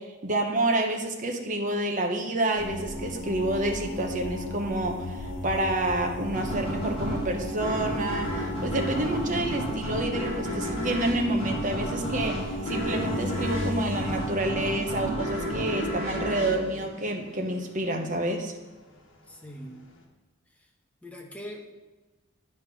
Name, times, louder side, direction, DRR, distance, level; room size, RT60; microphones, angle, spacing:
voice 1, 0.0-18.5, right 1 dB, 40° right, 4 dB, 1.0 m, -29 dB
sound 1, 2.6-16.4 18.3-18.4 18.9-19.3 19.6-20.0, left 1 dB, 70° left, 1.3 m, -35 dB
sound 2, 6.3-17.6, right 1 dB, 30° left, 2.6 m, -33 dB
voice 2, 19.3-19.8 20.5-20.7 21.0-21.7, equal, 5° left, 0 dB, 1.1 m, -42 dB
9.7 x 4.3 x 6.0 m, 1.2 s
head